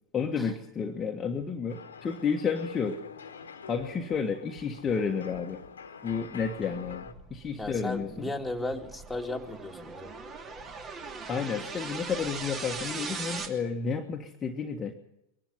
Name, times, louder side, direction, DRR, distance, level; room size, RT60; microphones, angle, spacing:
voice 1, 0.1-3.0 3.7-5.6 6.0-8.3 11.3-14.9, left 6 dB, 20° left, 2 dB, 1.6 m, -31 dB
sound 1, 1.7-7.1, left 6 dB, 70° left, 1.6 m, -45 dB
sound 2, 4.5-5.8 6.1-8.8, left 3 dB, 80° right, 2.4 m, -53 dB
sound 3, 6.9-13.5, right 4 dB, 25° right, 2.7 m, -40 dB
voice 2, 7.6-10.2, left 2 dB, 5° left, 2 dB, 2.4 m, -35 dB
22.5 x 12.0 x 9.6 m, 0.84 s
figure-of-eight pair, 90°, 0 cm